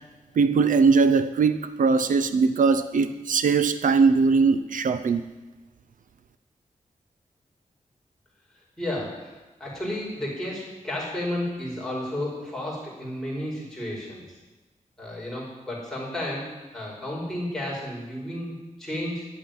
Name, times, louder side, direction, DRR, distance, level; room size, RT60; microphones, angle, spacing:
voice 1, 0.4-5.3, right 4 dB, 80° right, 0.6 m, -20 dB
voice 2, 8.8-14.4 15.0-19.3, left 1 dB, 5° left, 5.2 m, -32 dB
12.0 x 8.7 x 9.4 m
wide cardioid pair, 165°, 13 cm